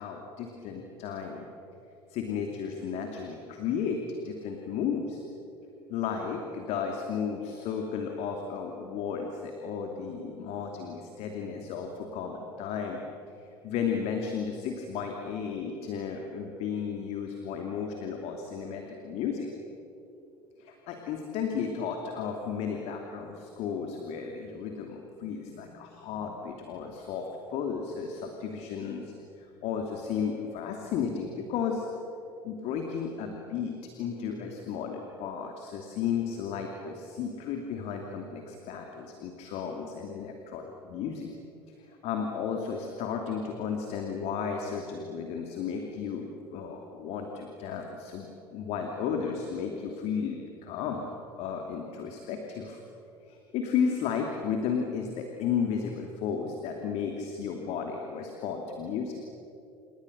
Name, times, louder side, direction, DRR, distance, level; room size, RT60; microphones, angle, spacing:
voice 1, 0.0-1.5 2.1-5.2 5.9-13.0 13.4-19.5 20.6-31.9 32.4-41.3 42.0-51.0 51.4-52.8 53.3-59.1, left 6 dB, 50° left, 3 dB, 2.8 m, -34 dB
30.0 x 28.5 x 6.8 m, 2.8 s
figure-of-eight pair, 65°, 14 cm